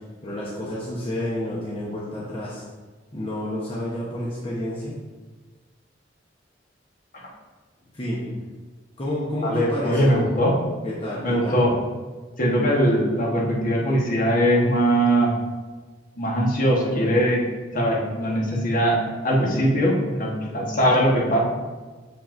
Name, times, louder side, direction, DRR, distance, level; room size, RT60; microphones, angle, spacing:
voice 1, 0.2-2.6 3.1-5.0 7.9-8.3 9.0-10.2 10.8-11.7, left 1 dB, 30° left, -7 dB, 0.9 m, -29 dB
voice 2, 9.4-10.6 11.2-11.7 12.4-15.3 16.2-17.4 17.7-21.4, equal, 50° left, -3 dB, 1.3 m, -21 dB
7.3 x 5.5 x 2.6 m, 1.3 s
head